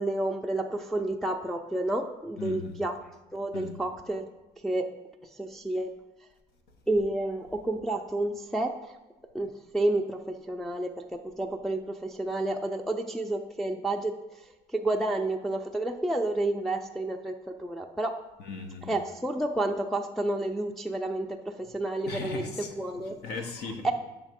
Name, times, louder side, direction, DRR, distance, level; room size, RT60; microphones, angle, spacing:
voice 1, 0.0-3.0 3.3-4.2 4.6-4.9 5.4-5.9 6.9-8.7 9.3-14.1 14.7-18.2 18.8-23.2 23.8-23.9, right 2 dB, ahead, 1 dB, 0.4 m, -30 dB
voice 2, 2.4-2.8 3.5-3.8 18.4-18.9 22.1-22.7 23.1-23.9, left 4 dB, 75° left, 5 dB, 0.9 m, -37 dB
7.2 x 3.3 x 5.1 m, 1.1 s
cardioid pair, 110°, 17 cm